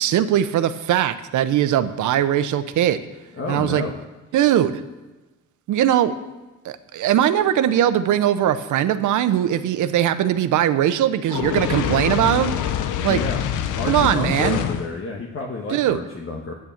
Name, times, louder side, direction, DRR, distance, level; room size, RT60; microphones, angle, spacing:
voice 1, 0.0-3.0 3.5-3.8 4.3-4.7 5.7-6.1 6.6-12.5 13.0-13.2 13.9-14.6 15.7-16.0, right 11 dB, 80° right, 11 dB, 0.8 m, -20 dB
voice 2, 3.4-4.0 13.1-13.4 13.7-16.5, left 3 dB, 45° left, 0 dB, 1.5 m, -30 dB
Fire, 11.3-15.0, left 9 dB, 90° left, 0.8 m, -25 dB
9.6 x 8.9 x 7.2 m, 1.1 s
cardioid pair, 90°, 30 cm